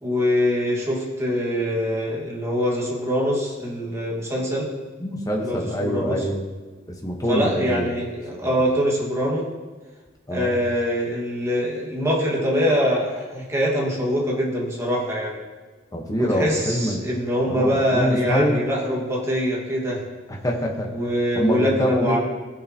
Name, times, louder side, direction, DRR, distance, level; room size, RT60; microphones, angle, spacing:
voice 1, 0.0-4.7 5.4-6.2 7.3-9.5 10.3-15.4 16.2-20.0 20.8-22.2, equal, 15° right, -3 dB, 1.7 m, -24 dB
voice 2, 5.0-6.4 7.0-7.9 8.4-8.6 10.3-10.5 15.9-17.0 17.4-18.6 20.3-20.9 21.3-22.2, equal, 20° left, 0 dB, 1.1 m, -24 dB
15.5 x 6.7 x 2.9 m, 1.3 s
head